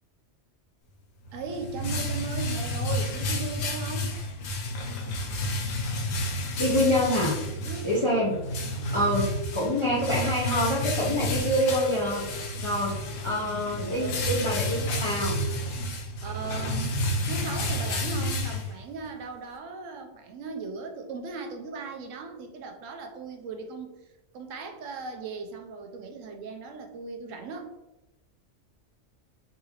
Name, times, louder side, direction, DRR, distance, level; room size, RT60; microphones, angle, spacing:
sound 1, 1.2-19.1, left 1 dB, 90° left, 1.0 m, -31 dB
voice 1, 1.3-4.2 7.7-7.9 12.9-14.2 16.2-23.9 24.3-27.7, right 4 dB, 80° right, 4 dB, 0.9 m, -38 dB
voice 2, 6.6-7.4 7.8-8.4 8.9-12.2 12.6-15.4, equal, 40° left, -5 dB, 0.4 m, -26 dB
3.8 x 2.4 x 2.8 m, 0.97 s
omnidirectional pair, 1.3 m